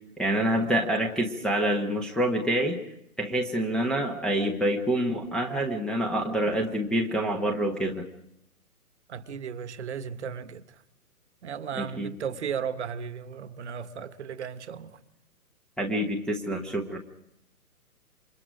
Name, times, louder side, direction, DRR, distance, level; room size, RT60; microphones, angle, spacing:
voice 1, 0.2-2.8 3.2-8.1 11.7-12.1 15.8-17.0, right 1 dB, ahead, 0.9 m, -27 dB
voice 2, 9.1-10.6 11.4-15.0, right 7 dB, 50° right, 1.4 m, -35 dB
27.5 x 25.0 x 5.1 m
figure-of-eight pair, 135°, 45 cm